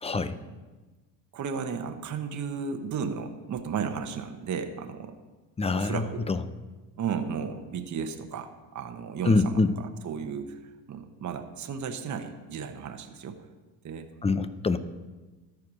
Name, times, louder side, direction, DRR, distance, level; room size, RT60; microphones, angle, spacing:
voice 1, 0.0-0.4 5.6-6.4 9.2-9.7 14.2-14.8, left 3 dB, 15° left, 13 dB, 0.4 m, -25 dB
voice 2, 1.3-5.1 5.7-6.3 7.0-9.6 10.0-10.6 10.9-13.4 13.8-14.1, right 6 dB, 35° right, 6 dB, 1.0 m, -34 dB
13.5 x 4.8 x 6.2 m, 1.2 s
supercardioid pair, 80°, 50 cm